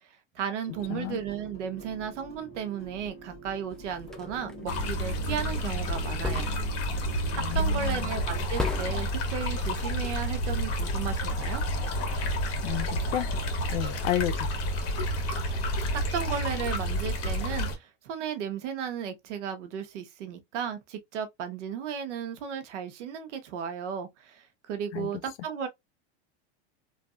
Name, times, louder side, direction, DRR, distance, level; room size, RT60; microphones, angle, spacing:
voice 1, 0.3-6.5 7.5-11.6 15.9-25.7, right 8 dB, 85° right, 1.0 m, -35 dB
sound 1, 0.7-8.5, equal, 15° left, 1.2 m, -45 dB
sound 2, 3.7-4.5 6.2-7.0 7.4-7.6 7.9-8.3 8.6-9.2, left 2 dB, ahead, 0.3 m, -35 dB
sound 3, 4.7-17.8, equal, 45° left, 1.3 m, -30 dB
voice 2, 7.3-8.1 12.6-13.3 13.7-14.5 24.9-25.1, left 15 dB, 75° left, 0.6 m, -31 dB
3.1 x 2.6 x 2.4 m
supercardioid pair, 115°, 35 cm